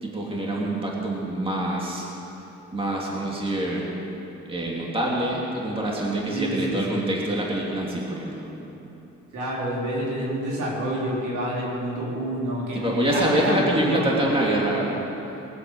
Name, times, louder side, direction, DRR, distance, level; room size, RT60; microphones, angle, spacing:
voice 1, 0.0-2.1 2.7-3.9 4.5-8.5 12.7-15.0, right 1 dB, 20° right, -4 dB, 2.9 m, -25 dB
voice 2, 6.3-7.0 9.3-14.1, right 1 dB, 75° right, -5 dB, 3.9 m, -28 dB
21.0 x 7.7 x 6.4 m, 3.0 s
cardioid pair, 90°, 30 cm